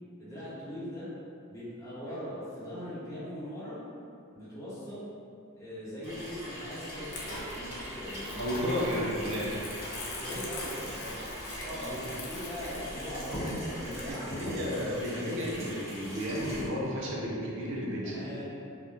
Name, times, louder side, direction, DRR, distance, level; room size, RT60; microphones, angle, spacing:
voice 1, 0.2-1.1 1.5-3.8 4.3-5.1 5.5-8.9 10.2-11.2 11.6-14.3 18.0-18.4, equal, 15° left, -11 dB, 0.8 m, -41 dB
Water tap faucet / Sink (filling or washing), 6.0-16.7, equal, 30° right, 0.8 m, -43 dB
sound 1, 6.9-9.5 9.8-11.0 12.9-13.0 13.3-14.9, equal, 75° left, 0.9 m, -41 dB
Crumpling crinkling, 7.1-14.1, left 2 dB, 50° left, 0.4 m, -44 dB
voice 2, 8.4-9.6 11.6-12.0 14.1-18.2, equal, 60° right, -4 dB, 0.4 m, -33 dB
2.4 x 2.0 x 3.0 m, 2.6 s
head